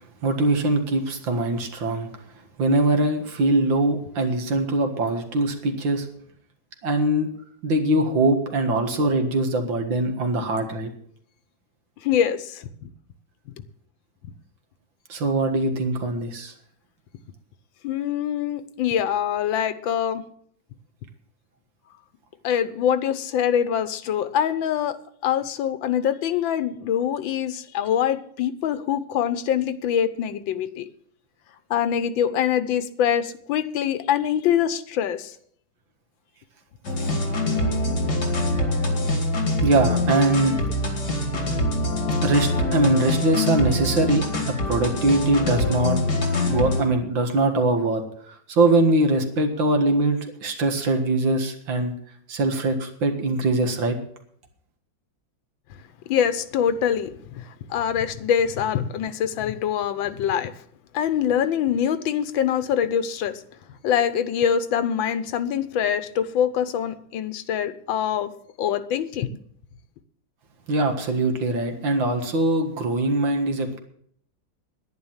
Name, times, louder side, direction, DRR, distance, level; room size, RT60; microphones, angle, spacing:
voice 1, 0.2-2.1 2.6-6.1 6.8-7.3 7.6-10.9 15.1-16.5 37.0-37.1 39.6-40.6 42.2-44.2 44.7-46.0 46.5-51.9 52.3-54.0 70.7-73.8, right 2 dB, 80° right, 5 dB, 2.5 m, -22 dB
voice 2, 12.0-12.9 17.8-20.2 22.4-30.9 31.7-35.3 56.1-57.4 57.7-60.5 60.9-63.4 63.8-68.3 68.6-69.3, left 9 dB, 85° left, 13 dB, 1.6 m, -24 dB
sound 1, 36.8-46.8, left 1 dB, 60° left, 3.0 m, -24 dB
10.5 x 10.5 x 7.3 m, 0.64 s
omnidirectional pair, 2.1 m